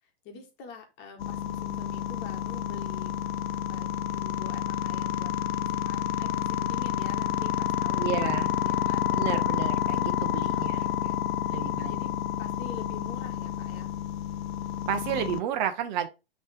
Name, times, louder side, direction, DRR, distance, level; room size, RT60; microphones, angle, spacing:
voice 1, 0.2-3.2 3.7-9.1 9.9-11.2 11.4-13.9, left 5 dB, 35° left, 1.8 m, -46 dB
sound 1, 1.2-15.4, left 10 dB, 75° left, 0.7 m, -29 dB
voice 2, 8.0-8.5 9.1-10.8 11.5-11.9 14.9-16.1, right 9 dB, 45° right, 1.0 m, -31 dB
5.4 x 3.4 x 5.1 m
hypercardioid pair, 115°, 31 cm